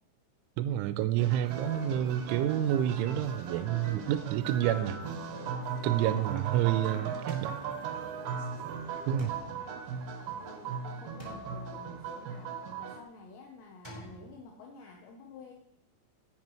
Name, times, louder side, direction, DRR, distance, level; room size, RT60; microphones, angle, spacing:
voice 1, 0.6-5.0 5.8-7.6 9.1-9.3, right 12 dB, 85° right, 11 dB, 3.0 m, -29 dB
sound 1, 1.2-13.0, right 6 dB, 65° right, 2.3 m, -37 dB
sound 2, 7.3-8.5 9.2-10.6 11.2-12.6 13.8-14.4, right 1 dB, 5° left, 3.9 m, -51 dB
voice 2, 10.4-15.5, left 4 dB, 75° left, 0 dB, 3.0 m, -51 dB
18.0 x 7.9 x 3.1 m, 0.88 s
omnidirectional pair, 5.5 m